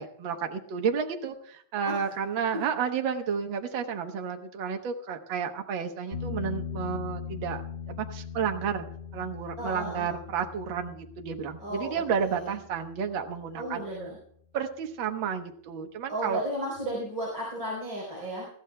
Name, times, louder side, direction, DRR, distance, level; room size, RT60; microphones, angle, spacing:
voice 1, 0.0-7.6 7.9-8.8 9.1-13.8 14.5-16.4, right 7 dB, 75° right, 5 dB, 1.1 m, -31 dB
sound 1, 6.1-13.7 16.8-16.9, left 6 dB, 25° left, 2.9 m, -40 dB
voice 2, 9.6-10.1 11.6-12.5 13.6-14.2 16.1-18.5, right 1 dB, 35° right, -3 dB, 4.7 m, -34 dB
20.5 x 14.5 x 2.3 m, 0.66 s
omnidirectional pair, 3.9 m